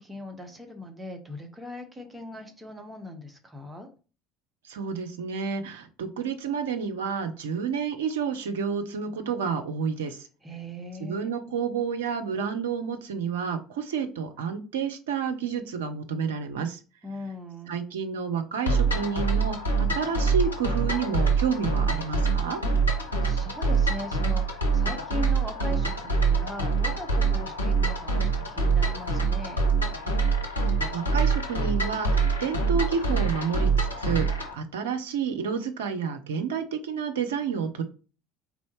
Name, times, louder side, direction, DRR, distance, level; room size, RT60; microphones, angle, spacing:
voice 1, 0.0-3.9 10.4-11.3 17.0-17.8 22.6-29.6, left 1 dB, 15° right, 4 dB, 0.9 m, -39 dB
voice 2, 4.6-10.3 11.0-16.8 17.7-22.6 30.9-37.8, right 6 dB, 70° right, 7 dB, 0.5 m, -30 dB
sound 1, 18.7-34.5, right 4 dB, 85° left, 0.7 m, -25 dB
4.1 x 3.5 x 3.0 m, 0.35 s
figure-of-eight pair, 65°, 0 cm